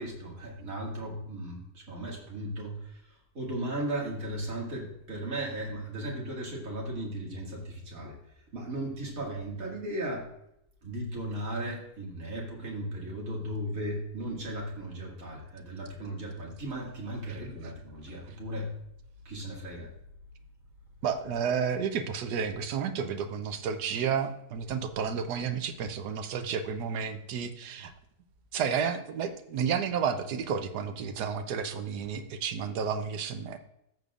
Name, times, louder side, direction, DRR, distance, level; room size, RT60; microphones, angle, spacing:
voice 1, 0.0-3.0 3.3-8.2 8.5-10.3 10.8-18.7 19.2-19.9, right 1 dB, 55° right, -2 dB, 2.5 m, -36 dB
voice 2, 17.2-17.7 21.0-27.9 28.5-33.6, right 7 dB, 80° right, 8 dB, 1.3 m, -31 dB
14.0 x 6.8 x 2.4 m, 0.79 s
omnidirectional pair, 1.7 m